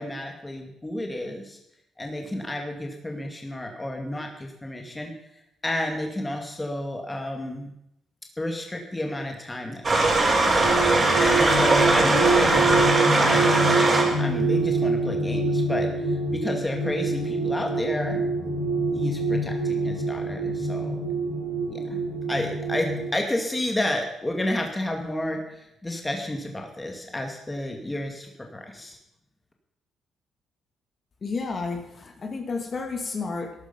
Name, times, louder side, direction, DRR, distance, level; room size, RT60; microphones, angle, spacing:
voice 1, 0.0-1.6 2.0-5.1 5.6-7.7 8.4-10.6 11.2-18.5 19.0-21.0 21.7-22.0 22.3-29.0, left 1 dB, 15° left, 2 dB, 2.1 m, -31 dB
sound 1, 9.8-14.2, right 2 dB, 30° right, 4.3 m, -20 dB
sound 2, 10.3-23.1, right 3 dB, 85° left, 4.5 m, -26 dB
voice 2, 31.2-33.5, left 4 dB, 40° left, 4 dB, 2.4 m, -31 dB
13.5 x 11.5 x 5.6 m, 0.81 s
cardioid pair, 90°, 0 cm